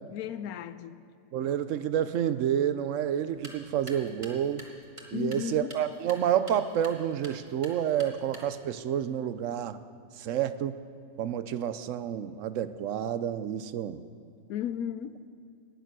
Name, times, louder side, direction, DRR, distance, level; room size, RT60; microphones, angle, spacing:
voice 1, 0.1-1.0 5.1-5.8 14.5-15.2, left 9 dB, 80° left, 1.1 m, -35 dB
voice 2, 1.3-4.7 5.1-9.8 10.2-10.8 11.2-14.0, right 10 dB, 70° right, 0.8 m, -29 dB
sound 1, 3.3-8.8, right 1 dB, 20° right, 1.5 m, -49 dB
18.5 x 6.7 x 6.1 m
omnidirectional pair, 1.5 m